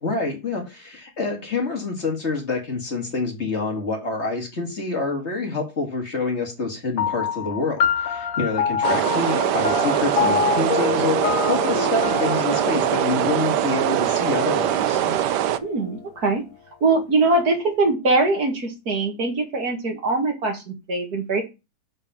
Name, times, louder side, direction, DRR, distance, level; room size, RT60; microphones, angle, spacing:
voice 1, 0.0-15.1, left 3 dB, 40° left, 3 dB, 2.2 m, -27 dB
sound 1, 7.0-15.8, left 7 dB, 60° left, 1.1 m, -27 dB
sound 2, 8.8-15.6, right 11 dB, 85° right, 1.3 m, -22 dB
voice 2, 15.6-16.4 16.8-21.4, right 3 dB, 60° right, 4 dB, 2.4 m, -22 dB
6.8 x 5.5 x 6.2 m, 0.26 s
omnidirectional pair, 1.8 m